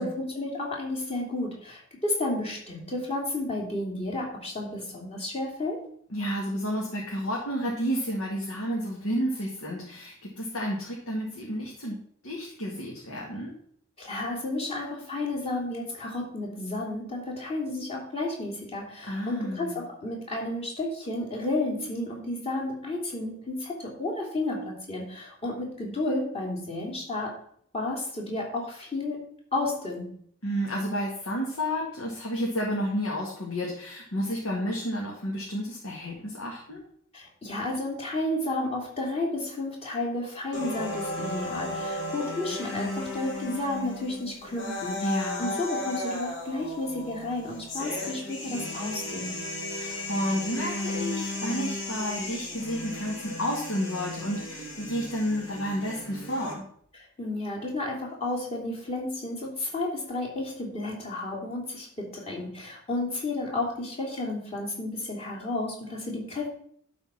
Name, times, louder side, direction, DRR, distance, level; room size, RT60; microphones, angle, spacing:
voice 1, 0.0-5.8 14.0-27.3 27.7-29.3 29.5-30.1 37.1-49.4 56.9-66.5, left 2 dB, 30° left, -3 dB, 3.0 m, -32 dB
voice 2, 6.1-12.0 12.2-13.5 19.0-19.8 30.4-36.8 45.0-45.6 49.7-56.6, equal, 85° left, -3 dB, 2.1 m, -31 dB
sound 1, 40.5-56.5, left 1 dB, 60° left, 2.4 m, -35 dB
11.5 x 4.4 x 5.9 m, 0.63 s
head